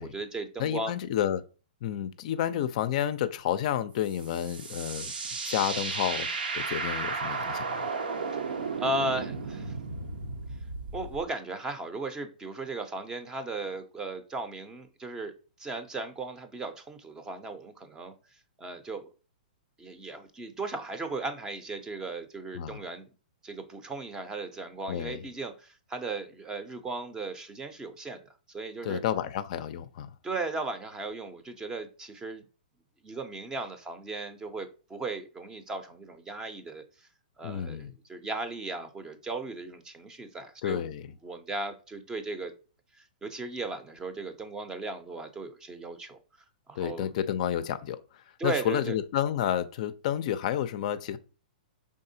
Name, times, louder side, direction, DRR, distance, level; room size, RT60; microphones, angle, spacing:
voice 1, 0.0-0.9 8.8-9.8 10.9-15.3 15.6-18.1 18.6-19.1 19.8-23.1 23.4-28.2 28.5-29.0 30.2-32.4 33.0-37.1 37.4-40.9 41.2-42.5 43.0-46.2 46.7-47.1 48.4-49.0, right 3 dB, 15° right, 0.5 m, -36 dB
voice 2, 0.6-1.4 1.8-5.1 5.4-6.3 6.5-7.7 22.5-22.8 24.9-25.2 28.8-30.1 37.4-37.9 40.6-41.1 46.8-48.0 48.4-51.2, left 10 dB, 50° left, 0.4 m, -30 dB
sound 1, 4.0-11.2, right 4 dB, 85° right, 0.8 m, -34 dB
4.7 x 3.6 x 2.6 m
hypercardioid pair, 140°, 5 cm